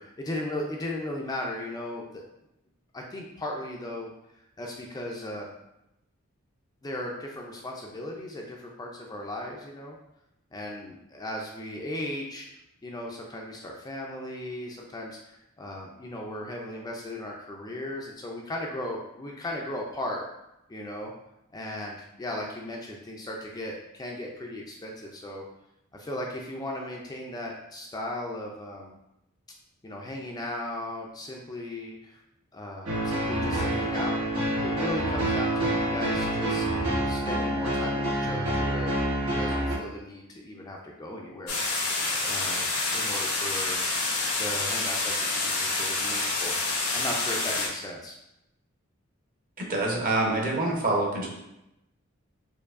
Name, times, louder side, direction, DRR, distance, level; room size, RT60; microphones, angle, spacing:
voice 1, 0.0-2.2 2.9-4.1 4.6-5.5 6.8-10.0 10.5-12.5 12.8-20.3 20.7-21.1 21.5-25.4 25.9-29.0 29.8-32.2 32.5-34.3 34.6-36.7 37.0-38.9 39.2-41.6 42.2-43.8 44.4-48.2, left 1 dB, 20° left, -1 dB, 0.4 m, -36 dB
sound 1, 32.9-39.8, right 1 dB, 80° right, 1.0 m, -27 dB
sound 2, 41.5-47.7, left 3 dB, 85° left, 0.9 m, -28 dB
voice 2, 49.6-51.3, right 2 dB, 40° right, -2 dB, 0.8 m, -26 dB
4.5 x 2.6 x 2.4 m, 0.86 s
head